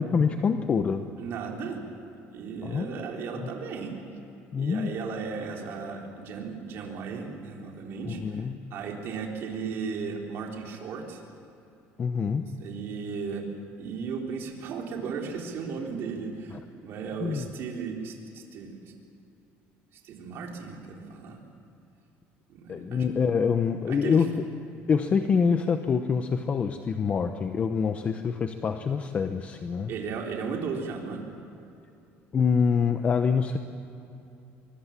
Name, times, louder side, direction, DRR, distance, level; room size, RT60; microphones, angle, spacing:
voice 1, 0.0-1.1 2.6-3.0 3.3-3.6 4.5-4.9 8.0-8.7 12.0-12.6 16.5-16.6 17.2-17.5 22.7-24.3 24.9-29.9 32.3-33.6, left 6 dB, 30° left, 7 dB, 0.9 m, -26 dB
voice 2, 1.2-1.8 2.3-3.9 4.6-8.4 8.7-11.2 12.6-13.5 13.8-18.9 20.0-21.4 22.5-23.0 23.9-24.2 29.9-31.2, right 5 dB, 55° right, 1 dB, 4.1 m, -35 dB
23.5 x 23.5 x 7.5 m, 2.8 s
cardioid pair, 150°, 5 cm